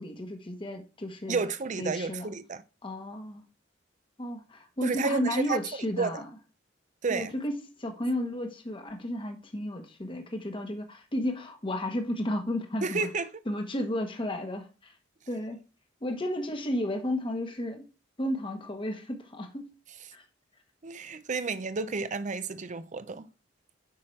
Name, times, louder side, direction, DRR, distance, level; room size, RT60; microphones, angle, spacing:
voice 1, 0.0-1.5 1.8-2.3 2.8-3.4 4.2-6.3 7.1-13.1 13.5-14.9 15.3-15.6 16.0-17.8 18.2-19.7 20.1-20.2, left 1 dB, 25° left, 1.1 m, -33 dB
voice 2, 1.3-2.6 4.8-5.6 6.0-6.2 7.0-7.3 12.8-13.3 20.8-23.3, right 4 dB, 40° right, 0.6 m, -31 dB
8.6 x 5.7 x 3.2 m
head